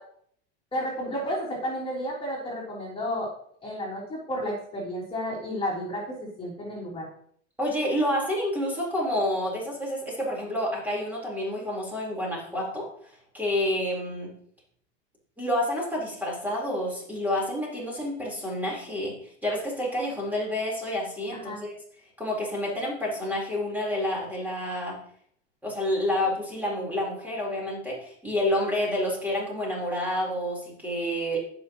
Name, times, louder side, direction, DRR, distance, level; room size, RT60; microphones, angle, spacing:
voice 1, 0.7-3.3 3.6-7.0 21.4-21.6, equal, 15° left, -5 dB, 3.8 m, -32 dB
voice 2, 7.6-12.9 13.3-14.3 15.4-21.7 22.2-25.0 25.6-31.4, left 1 dB, 5° right, -4 dB, 4.2 m, -29 dB
15.0 x 6.2 x 3.1 m, 0.62 s
hypercardioid pair, 95°, 34 cm